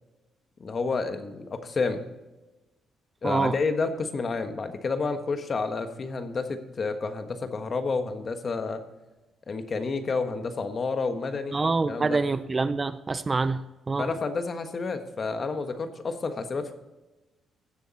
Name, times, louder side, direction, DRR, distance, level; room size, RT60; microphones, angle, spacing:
voice 1, 0.6-2.1 3.2-8.8 9.5-11.6 11.9-12.2 14.0-16.7, left 4 dB, 40° left, 8 dB, 1.4 m, -30 dB
voice 2, 3.2-3.5 11.5-14.1, right 3 dB, 30° right, 14 dB, 0.5 m, -26 dB
16.0 x 7.0 x 4.2 m, 1.1 s
cardioid pair, 90°, 0 cm